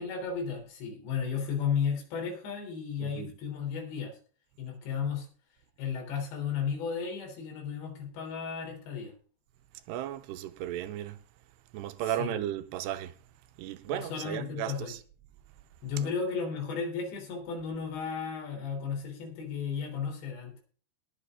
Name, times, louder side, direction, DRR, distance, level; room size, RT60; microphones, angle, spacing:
voice 1, 0.0-4.1 4.6-5.3 5.8-9.1 12.2-12.4 13.9-14.9 15.8-20.6, left 6 dB, 80° left, 5.7 m, -34 dB
voice 2, 3.0-3.3 9.9-11.2 11.7-13.1 13.6-15.0 16.0-16.1, right 12 dB, 80° right, 2.9 m, -35 dB
20.5 x 7.2 x 3.7 m
omnidirectional pair, 5.0 m